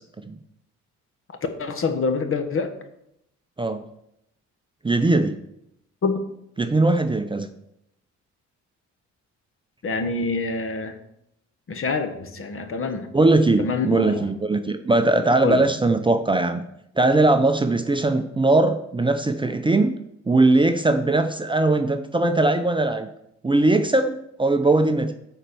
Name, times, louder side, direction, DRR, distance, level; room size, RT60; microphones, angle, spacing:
voice 1, 1.6-2.7 6.0-6.2 9.8-11.0 11.7-13.1 13.6-14.3 15.4-15.6, left 4 dB, 45° left, 7 dB, 1.3 m, -26 dB
voice 2, 4.8-5.4 6.6-7.5 13.1-16.6 17.0-19.9 20.3-23.1 23.4-25.1, right 2 dB, 15° right, 7 dB, 0.6 m, -20 dB
9.7 x 4.4 x 6.8 m, 0.79 s
cardioid pair, 90°, 30 cm